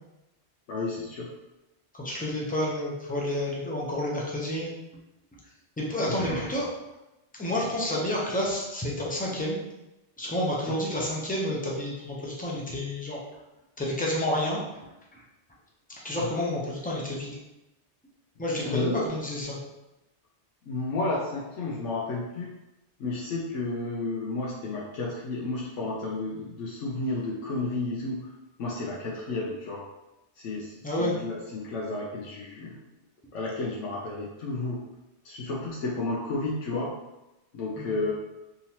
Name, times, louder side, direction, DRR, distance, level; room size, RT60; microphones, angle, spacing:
voice 1, 0.7-1.3 6.1-6.2 10.7-10.8 18.7-19.0 20.7-22.5 23.0-28.3 28.6-29.8 30.4-32.8 33.3-34.8 35.2-36.9 37.5-38.1, left 2 dB, 85° left, -4 dB, 1.0 m, -32 dB
voice 2, 1.9-4.7 5.8-6.7 7.4-9.6 10.2-13.2 13.8-14.6 16.0-17.4 18.4-19.6 30.8-31.1 37.8-37.9, left 1 dB, 10° left, -4 dB, 0.5 m, -29 dB
3.7 x 2.8 x 2.8 m, 0.97 s
omnidirectional pair, 1.2 m